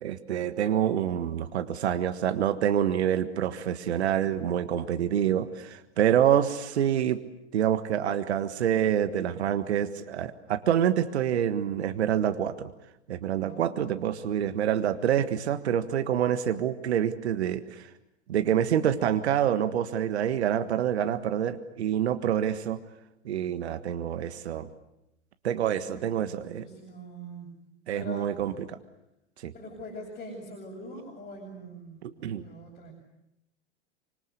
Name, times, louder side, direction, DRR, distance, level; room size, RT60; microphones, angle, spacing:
voice 1, 0.0-7.2 7.5-12.7 13.1-17.9 18.3-22.8 23.2-24.7 25.4-26.7 27.9-28.5 29.4-29.5 32.0-32.4, right 10 dB, 65° right, 11 dB, 1.6 m, -27 dB
voice 2, 13.4-13.8 25.8-27.5 27.9-28.5 29.5-32.9, equal, 20° left, -2 dB, 7.0 m, -43 dB
26.0 x 25.0 x 8.3 m, 0.86 s
figure-of-eight pair, 95°, 35 cm